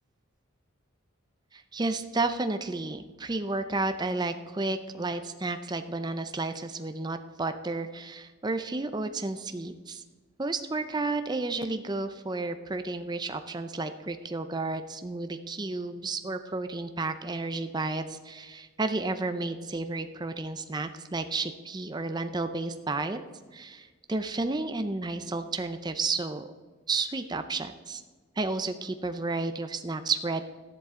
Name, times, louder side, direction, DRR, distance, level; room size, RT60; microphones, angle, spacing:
voice 1, 1.5-10.0 10.4-23.2 23.5-26.5 26.9-28.0 28.4-30.4, right 3 dB, 20° right, 8 dB, 0.5 m, -32 dB
13.0 x 10.5 x 3.7 m, 1.4 s
head